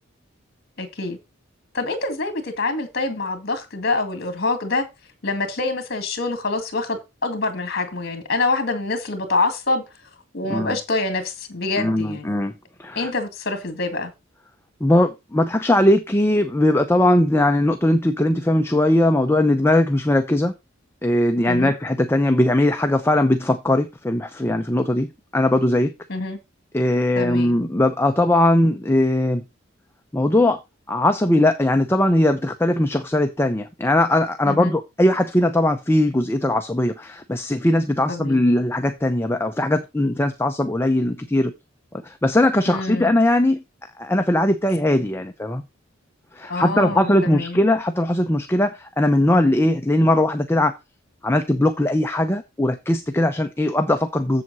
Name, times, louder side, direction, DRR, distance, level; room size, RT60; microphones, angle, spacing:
voice 1, 0.8-1.2 1.7-4.9 5.2-9.8 10.3-12.4 13.0-14.1 21.5-21.7 26.1-26.4 27.2-27.6 34.5-34.7 38.1-38.4 42.7-43.1 46.5-47.6, left 3 dB, 55° left, 2.1 m, -26 dB
voice 2, 11.8-12.5 12.8-13.1 14.8-20.5 21.0-25.1 25.3-25.9 26.7-29.4 30.1-30.6 30.9-41.5 42.0-43.6 44.0-45.6 46.4-50.7 51.2-54.4, left 1 dB, 10° left, 0.6 m, -19 dB
7.7 x 7.5 x 4.0 m
head